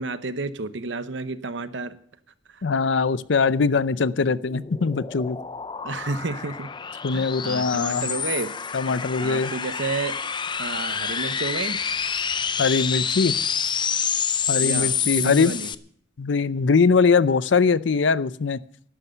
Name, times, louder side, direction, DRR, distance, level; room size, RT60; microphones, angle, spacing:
voice 1, 0.0-2.0 2.5-2.6 5.8-6.7 7.1-8.5 9.2-10.2 10.6-11.8 14.6-15.7, right 3 dB, 70° right, 13 dB, 0.9 m, -30 dB
voice 2, 2.6-5.4 7.0-8.1 8.7-9.5 12.6-13.3 14.5-15.5 16.2-18.6, left 4 dB, 70° left, 17 dB, 0.5 m, -21 dB
sound 1, 4.4-15.8, left 7 dB, 25° left, 0.5 m, -28 dB
12.0 x 11.5 x 6.8 m, 0.62 s
head